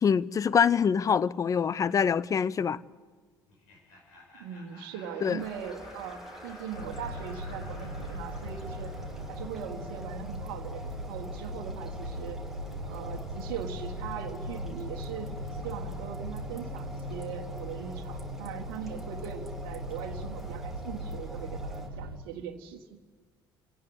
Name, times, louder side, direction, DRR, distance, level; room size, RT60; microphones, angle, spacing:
voice 1, 0.0-2.8 5.2-5.4, left 7 dB, 30° left, 0.6 m, -25 dB
Laughter, 3.5-10.3, left 2 dB, 65° left, 5.3 m, -53 dB
voice 2, 4.3-9.0 9.3-12.4 12.8-23.0, right 8 dB, 60° right, 1.5 m, -40 dB
sound 1, 5.4-21.9, right 1 dB, 5° right, 2.2 m, -47 dB
sound 2, 6.7-22.2, equal, 85° right, 1.6 m, -39 dB
27.0 x 17.5 x 8.3 m
figure-of-eight pair, 60°, 12 cm